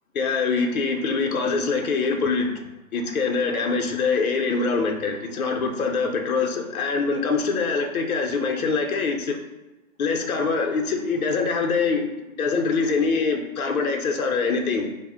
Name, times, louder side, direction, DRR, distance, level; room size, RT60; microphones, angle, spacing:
voice 1, 0.1-2.5 2.9-9.4 10.0-14.9, left 4 dB, 90° left, 3 dB, 0.6 m, -24 dB
2.1 x 2.0 x 3.5 m, 1.0 s
hypercardioid pair, 180°, 41 cm